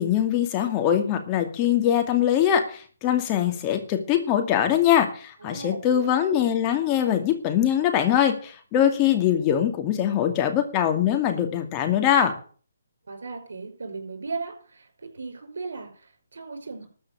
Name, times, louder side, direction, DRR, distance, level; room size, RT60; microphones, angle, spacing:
voice 1, 0.0-12.3, left 10 dB, 25° left, 5 dB, 2.3 m, -22 dB
voice 2, 5.4-6.2 13.1-16.9, right 4 dB, 70° right, 5 dB, 5.6 m, -37 dB
13.5 x 6.1 x 8.8 m, 0.42 s
figure-of-eight pair, 150°, 0 cm